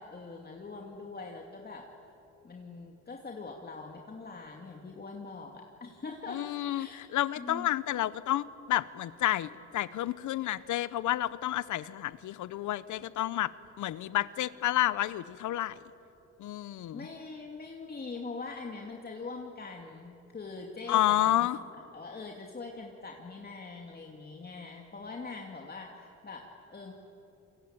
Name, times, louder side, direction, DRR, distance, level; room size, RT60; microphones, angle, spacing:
voice 1, 0.0-1.8 2.4-6.5 6.7-7.0 7.4-7.7 16.9-21.5 21.9-26.9, left 3 dB, 30° left, 1 dB, 2.6 m, -43 dB
voice 2, 6.3-13.5 13.8-15.8 16.4-17.0 20.9-21.6, left 13 dB, 75° left, 16 dB, 1.0 m, -30 dB
28.0 x 23.5 x 9.0 m, 2.9 s
cardioid pair, 90°, 30 cm